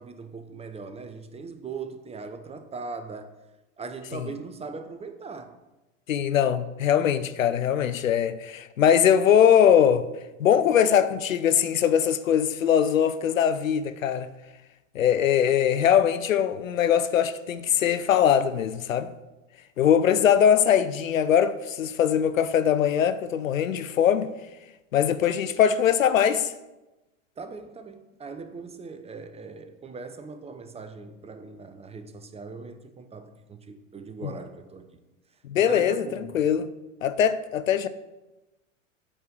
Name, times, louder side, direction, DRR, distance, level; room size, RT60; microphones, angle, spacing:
voice 1, 0.0-3.3 3.8-5.6 27.4-35.0 35.6-36.4, right 4 dB, 15° right, 0.7 m, -40 dB
voice 2, 6.1-10.1 10.4-14.3 14.9-19.1 19.8-24.3 24.9-26.5 34.2-34.3 35.4-36.0 36.3-36.7 37.0-37.9, left 9 dB, 80° left, 0.7 m, -21 dB
8.7 x 4.4 x 6.7 m
hypercardioid pair, 90°, 39 cm